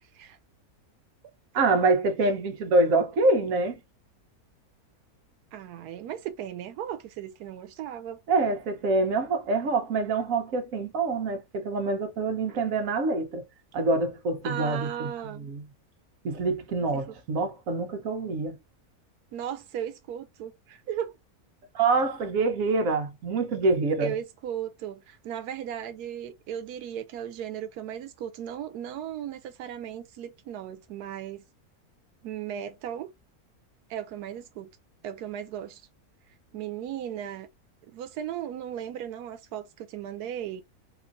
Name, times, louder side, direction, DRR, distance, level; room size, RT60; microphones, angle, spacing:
voice 1, 0.0-0.4 5.5-8.2 14.4-15.5 16.9-17.2 19.3-21.1 24.0-31.4 32.2-33.1 33.9-34.7 35.0-35.8 36.5-37.5 37.9-40.6, right 10 dB, 90° right, 1.1 m, -36 dB
voice 2, 1.5-3.8 8.3-13.4 13.7-15.6 16.2-18.6 21.7-24.1, right 3 dB, 65° right, 1.3 m, -26 dB
4.3 x 2.5 x 2.5 m
omnidirectional pair, 1.6 m